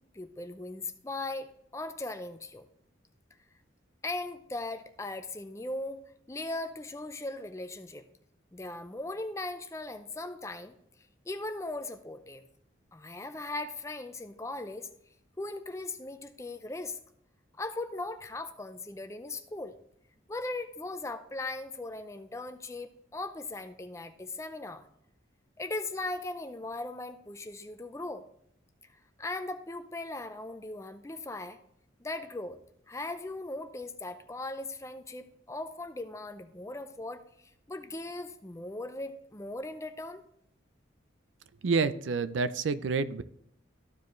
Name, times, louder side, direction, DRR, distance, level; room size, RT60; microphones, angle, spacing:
voice 1, 0.1-2.6 4.0-6.0 6.3-8.1 8.5-10.8 11.3-12.4 12.9-14.9 15.4-17.0 17.6-19.8 20.3-24.9 25.6-28.3 29.2-31.6 32.0-32.6 32.9-40.2, left 2 dB, 15° left, 9 dB, 0.5 m, -38 dB
voice 2, 41.6-43.2, right 4 dB, 75° right, 14 dB, 0.4 m, -28 dB
13.5 x 4.9 x 3.1 m, 0.71 s
head